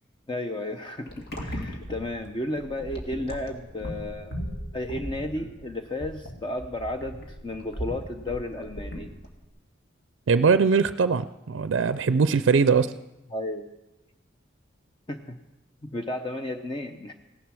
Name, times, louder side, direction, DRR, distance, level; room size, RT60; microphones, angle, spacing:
voice 1, 0.3-4.3 4.7-9.1 13.3-13.7 15.1-15.4 15.8-17.1, left 1 dB, 25° left, 5 dB, 0.7 m, -33 dB
sound 1, 1.1-9.4, equal, 60° left, 2.2 m, -37 dB
voice 2, 10.3-12.9, right 5 dB, 80° right, 12 dB, 0.4 m, -21 dB
16.5 x 10.5 x 6.1 m, 1.0 s
head